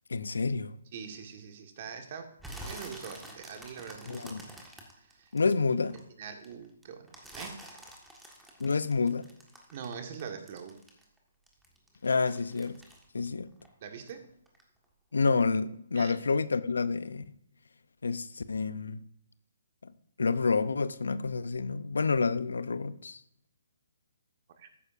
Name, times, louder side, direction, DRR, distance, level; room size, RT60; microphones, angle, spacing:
voice 1, 0.1-0.8 4.1-4.5 5.3-6.0 8.6-9.3 12.0-12.8 13.1-13.5 15.1-17.2 18.0-19.0 19.8-19.9 20.2-23.2, left 4 dB, 75° left, 0.6 m, -29 dB
voice 2, 0.9-2.3 2.6-4.3 5.0-5.3 5.9-7.6 9.7-10.8 13.8-14.3 15.9-16.2 24.6-24.7, right 6 dB, 45° right, 1.6 m, -43 dB
sound 1, 2.4-6.0 6.4-11.2 11.5-14.2 14.5-14.9 15.3-15.4, right 1 dB, 5° right, 1.6 m, -47 dB
14.0 x 9.8 x 2.6 m
figure-of-eight pair, 140°, 0 cm